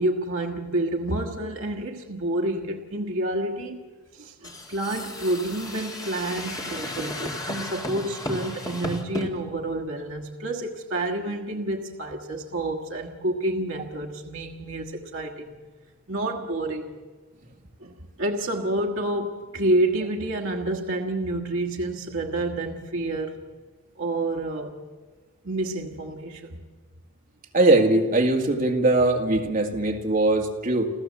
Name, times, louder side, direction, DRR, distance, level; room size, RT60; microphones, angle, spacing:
voice 1, 0.0-3.8 4.1-15.6 16.1-16.9 17.8-23.4 24.0-24.8 25.4-26.6, right 1 dB, 60° right, 1.5 m, -29 dB
sound 1, 4.4-9.3, left 1 dB, 15° left, 2.0 m, -34 dB
voice 2, 27.5-30.9, right 2 dB, 40° right, 2.0 m, -21 dB
28.5 x 14.0 x 7.4 m
head